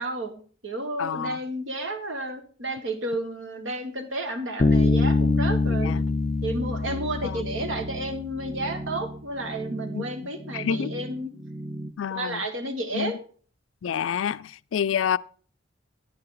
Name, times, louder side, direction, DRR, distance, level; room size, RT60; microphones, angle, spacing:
voice 1, 0.0-5.9 6.4-11.3 12.1-13.2, right 1 dB, 75° right, 1.7 m, -32 dB
voice 2, 1.0-1.4 5.6-6.0 7.2-7.5 9.9-10.0 10.5-10.9 12.0-12.4 12.9-13.1 13.8-15.2, left 8 dB, 85° left, 0.4 m, -28 dB
Bass guitar, 4.6-8.3, left 3 dB, 30° left, 0.5 m, -24 dB
sound 1, 6.9-11.9, right 1 dB, 15° right, 0.5 m, -37 dB
10.0 x 9.9 x 3.9 m
head